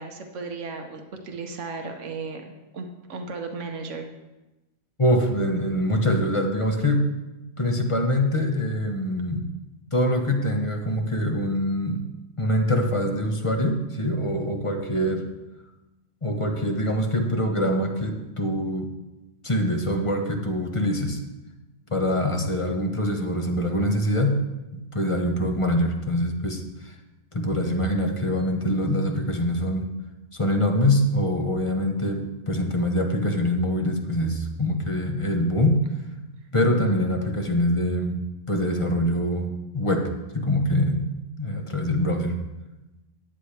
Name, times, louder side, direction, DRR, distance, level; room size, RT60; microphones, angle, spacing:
voice 1, 0.0-4.1 36.6-36.8, right 4 dB, 80° right, 4 dB, 1.4 m, -35 dB
voice 2, 5.0-7.1 7.6-9.4 9.9-12.0 12.4-15.2 16.2-18.9 19.4-21.2 21.9-24.3 24.7-26.9 27.3-29.8 30.3-35.8 36.5-38.2 38.5-39.5 39.7-40.1 40.3-41.0 41.4-42.4, left 1 dB, 25° left, 3 dB, 1.2 m, -24 dB
14.0 x 9.8 x 3.4 m, 1.0 s
omnidirectional pair, 1.2 m